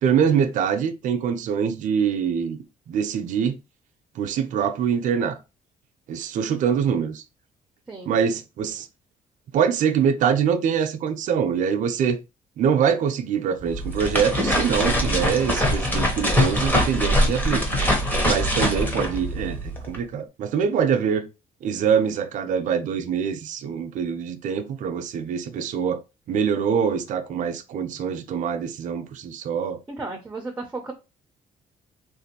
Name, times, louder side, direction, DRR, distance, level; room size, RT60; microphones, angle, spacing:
voice 1, 0.0-2.6 2.9-3.5 4.2-5.4 6.1-7.2 8.1-8.9 9.5-12.2 12.6-17.8 18.2-21.2 21.6-26.0 26.3-29.8, right 7 dB, 65° right, 0.5 m, -24 dB
sound 1, 13.6-20.0, equal, 10° left, 0.8 m, -23 dB
voice 2, 29.9-30.9, right 3 dB, 10° right, 0.5 m, -34 dB
3.5 x 2.5 x 2.7 m
cardioid pair, 150°, 14 cm